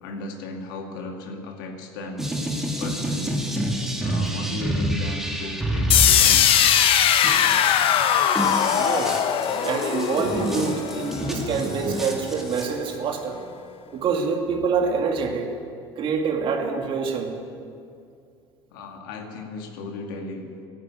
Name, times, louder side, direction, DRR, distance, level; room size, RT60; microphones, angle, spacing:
voice 1, 0.0-2.3 2.8-3.5 4.0-6.5 18.7-20.5, left 2 dB, 90° left, 3 dB, 2.1 m, -35 dB
sound 1, 2.2-12.7, right 1 dB, 5° right, 2.3 m, -28 dB
sound 2, 5.9-11.8, left 9 dB, 55° left, 1.1 m, -20 dB
voice 2, 8.8-9.2 9.6-13.4 13.9-15.5 16.0-17.3, right 5 dB, 50° right, 3 dB, 2.3 m, -26 dB
14.5 x 11.0 x 8.4 m, 2.4 s
supercardioid pair, 95°, 11 cm